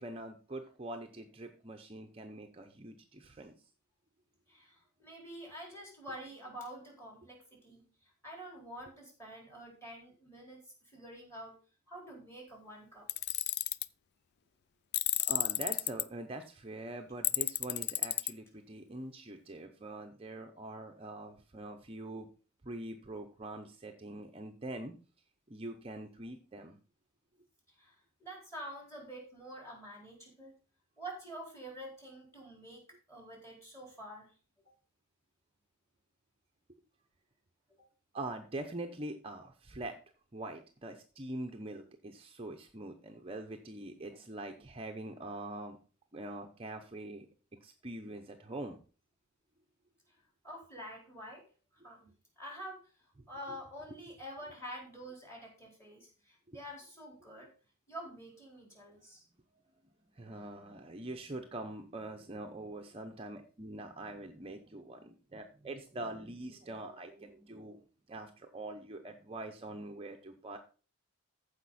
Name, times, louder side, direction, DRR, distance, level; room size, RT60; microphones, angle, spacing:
voice 1, 0.0-3.5 15.3-22.3 22.6-24.9 25.5-26.8 38.1-40.0 40.3-45.8 46.1-47.3 47.5-48.8 60.2-70.6, right 1 dB, 25° right, 5 dB, 0.7 m, -44 dB
voice 2, 4.5-11.6 11.9-13.1 27.7-30.5 31.0-34.3 37.8-37.9 50.1-50.2 50.4-51.5 51.7-52.1 52.4-57.5 57.9-59.2, equal, 15° left, 0 dB, 4.2 m, -48 dB
Tools, 13.1-13.9 14.9-16.0 17.2-18.3, left 14 dB, 50° left, 0.4 m, -31 dB
14.5 x 5.1 x 4.2 m, 0.36 s
head